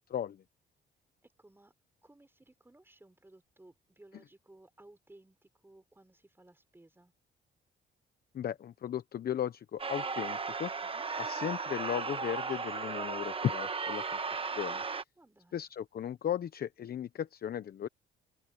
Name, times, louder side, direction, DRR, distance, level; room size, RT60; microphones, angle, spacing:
voice 1, 0.1-0.4 8.3-10.7 11.2-14.0 14.4-14.8 15.5-17.9, left 9 dB, 50° left, 0.8 m, -36 dB
voice 2, 1.2-1.7 2.0-7.1 10.8-11.1 15.2-15.7, right 2 dB, 10° right, 4.6 m, -59 dB
sound 1, 9.8-15.0, right 4 dB, 30° right, 1.2 m, -36 dB
open air
cardioid pair, 90°, 20 cm